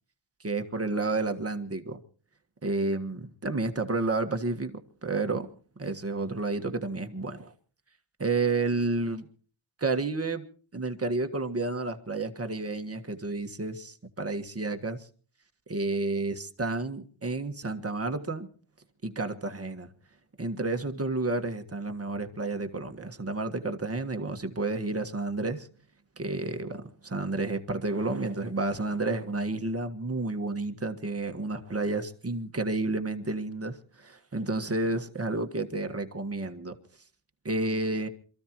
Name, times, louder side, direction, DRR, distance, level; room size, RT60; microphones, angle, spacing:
voice 1, 0.4-2.0 2.6-5.5 5.8-7.5 8.2-9.2 9.8-10.4 10.7-15.1 15.7-18.5 19.0-19.9 20.4-25.7 26.2-36.8 37.4-38.1, right 3 dB, 30° right, 1.6 m, -31 dB
27.5 x 14.5 x 3.0 m
wide cardioid pair, 140°, 46 cm